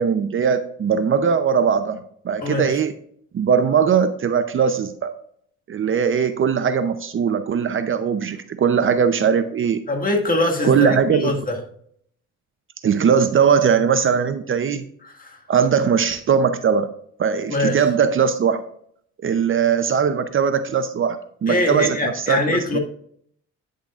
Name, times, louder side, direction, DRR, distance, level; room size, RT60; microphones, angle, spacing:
voice 1, 0.0-2.9 3.3-5.1 5.7-9.8 10.6-11.3 12.8-14.8 15.5-16.9 17.2-18.6 19.2-22.8, right 7 dB, 45° right, 10 dB, 0.6 m, -20 dB
voice 2, 2.4-2.7 9.9-11.6 15.2-15.4 17.5-17.8 21.5-22.8, left 1 dB, 30° left, 1 dB, 1.8 m, -22 dB
9.5 x 6.5 x 2.4 m, 0.65 s
cardioid pair, 90°, 30 cm